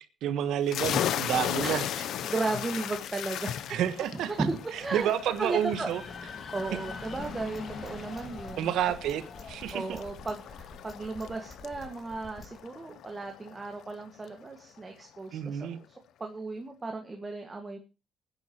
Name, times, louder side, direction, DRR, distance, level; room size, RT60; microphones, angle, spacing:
voice 1, 0.2-1.8 3.7-4.3 4.7-6.0 8.6-9.8 15.3-15.8, right 10 dB, 85° right, 1.3 m, -29 dB
sound 1, 0.7-14.0, left 10 dB, 75° left, 0.7 m, -37 dB
voice 2, 1.6-1.9 2.2-3.8 4.3-5.1 5.4-5.9 6.5-8.7 9.7-15.9 16.2-17.8, right 3 dB, 25° right, 1.8 m, -35 dB
sound 2, 3.0-12.5, left 4 dB, 50° left, 2.2 m, -46 dB
sound 3, 7.2-12.6, left 3 dB, 30° left, 4.6 m, -48 dB
23.5 x 9.7 x 3.0 m
cardioid pair, 90°, 0 cm